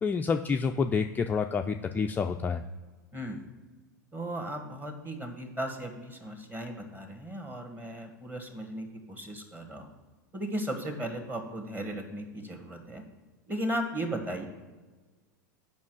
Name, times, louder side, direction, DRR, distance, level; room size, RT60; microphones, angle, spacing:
voice 1, 0.0-2.6, left 5 dB, 15° left, 5 dB, 0.3 m, -28 dB
voice 2, 3.1-3.5 4.1-9.9 10.3-13.0 13.5-14.5, right 1 dB, 15° right, 5 dB, 1.6 m, -36 dB
7.2 x 5.4 x 6.3 m, 1.3 s
figure-of-eight pair, 90°, 11 cm